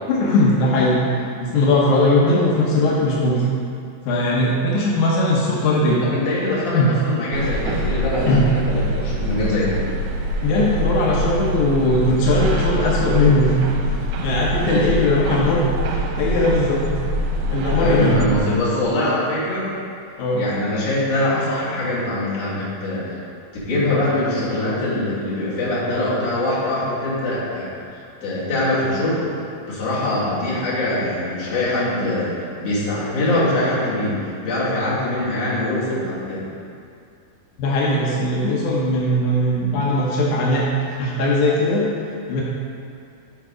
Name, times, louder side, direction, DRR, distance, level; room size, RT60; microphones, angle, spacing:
voice 1, 0.1-3.5 4.1-6.0 6.7-6.9 8.3-8.5 10.4-13.9 14.2-15.6 16.2-16.9 17.5-18.3 20.2-20.4 37.6-40.7 41.0-41.8 42.3-42.4, left 1 dB, 75° left, -4 dB, 1.8 m, -19 dB
voice 2, 6.0-9.9 17.8-19.7 20.4-23.2 23.6-27.7 28.2-29.3 29.7-32.3 32.6-36.5, left 1 dB, 60° left, -9 dB, 2.9 m, -23 dB
sound 1, 7.3-18.4, right 1 dB, 85° right, 2.5 m, -24 dB
7.2 x 4.6 x 4.9 m, 2.4 s
omnidirectional pair, 4.5 m